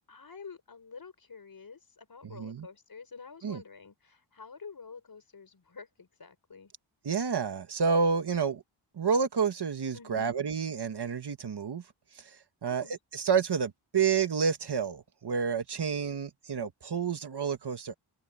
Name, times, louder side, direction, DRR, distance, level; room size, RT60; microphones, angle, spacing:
voice 1, 0.1-6.7 9.9-10.3 12.6-13.0, left 5 dB, 45° left, 4.8 m, -48 dB
voice 2, 2.2-2.7 3.4-3.6 7.0-8.6 9.0-11.8 12.6-12.9 13.1-17.9, right 6 dB, 55° right, 1.5 m, -29 dB
open air
wide cardioid pair, 140°, 48 cm